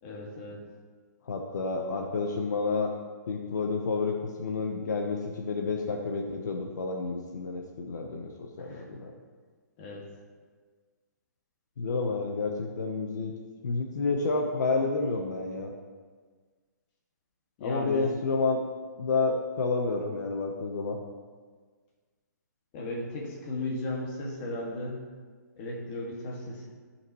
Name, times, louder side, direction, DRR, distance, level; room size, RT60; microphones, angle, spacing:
voice 1, 0.0-0.6 8.6-8.9 9.8-10.1 17.6-18.1 22.7-25.0 25.6-26.7, left 1 dB, 35° left, -2 dB, 2.1 m, -35 dB
voice 2, 1.2-2.9 3.3-9.1 11.8-13.3 13.6-15.7 17.6-18.6 19.0-21.0, left 4 dB, 70° left, 2 dB, 1.0 m, -30 dB
16.0 x 5.8 x 3.1 m, 1.5 s
hypercardioid pair, 150°, 10 cm